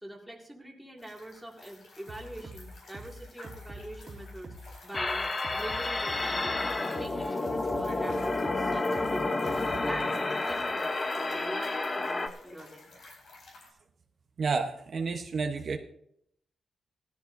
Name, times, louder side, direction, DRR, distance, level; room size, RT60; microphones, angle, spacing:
voice 1, 0.0-4.5 4.8-5.3 5.5-6.7 6.9-9.6 9.9-10.2 10.4-12.9, right 1 dB, 5° right, 0 dB, 2.2 m, -43 dB
sound 1, 1.0-13.7, left 3 dB, 75° left, 4.4 m, -52 dB
sound 2, 2.1-10.0, right 1 dB, 35° right, 2.3 m, -45 dB
sound 3, 4.9-12.3, left 2 dB, 30° left, 0.9 m, -30 dB
voice 2, 14.4-15.8, right 4 dB, 55° right, 3 dB, 1.0 m, -30 dB
18.5 x 13.0 x 2.6 m, 0.72 s
wide cardioid pair, 115°, 0 cm